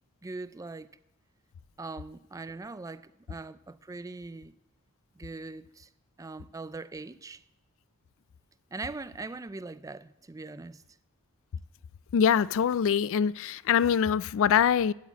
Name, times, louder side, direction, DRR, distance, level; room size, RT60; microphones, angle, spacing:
voice 1, 0.2-0.9 1.8-4.5 5.2-5.9 6.2-7.4 8.7-10.8, right 3 dB, 15° right, 0.4 m, -41 dB
voice 2, 12.1-14.9, left 8 dB, 60° left, 0.3 m, -24 dB
9.6 x 8.3 x 8.2 m
head